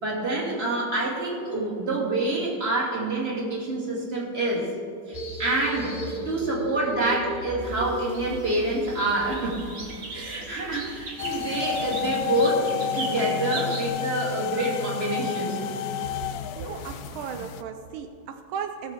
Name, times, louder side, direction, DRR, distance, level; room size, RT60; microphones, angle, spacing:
voice 1, 0.0-4.7 5.1-9.6 10.1-15.6, right 2 dB, 30° right, -3 dB, 2.3 m, -27 dB
sound 1, 5.1-12.2, right 1 dB, 15° left, 1.5 m, -37 dB
sound 2, 7.6-13.9, right 3 dB, 50° right, 1.8 m, -39 dB
sound 3, 11.2-17.6, left 9 dB, 80° left, 0.8 m, -31 dB
voice 2, 16.6-18.9, right 7 dB, 85° right, 7 dB, 1.4 m, -36 dB
17.5 x 6.7 x 4.4 m, 2.5 s
omnidirectional pair, 2.2 m